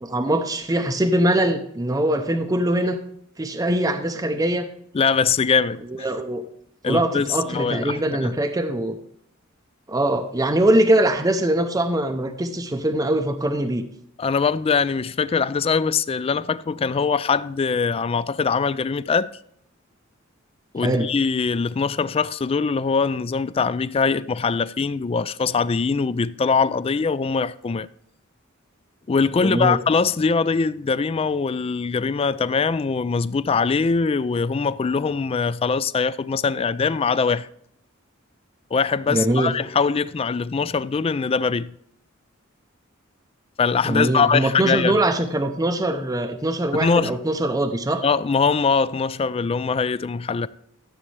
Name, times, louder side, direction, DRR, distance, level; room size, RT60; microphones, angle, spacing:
voice 1, 0.0-3.0 3.4-4.7 5.9-6.4 6.8-9.0 9.9-13.9 20.8-21.1 29.4-29.8 39.1-39.5 43.8-48.0, right 1 dB, 15° right, 0.6 m, -22 dB
voice 2, 4.9-5.8 6.8-8.3 14.2-19.3 20.7-27.9 29.1-37.5 38.7-41.7 43.6-45.0 46.7-47.2 48.0-50.5, left 5 dB, 30° left, 0.3 m, -22 dB
14.0 x 7.3 x 3.3 m
head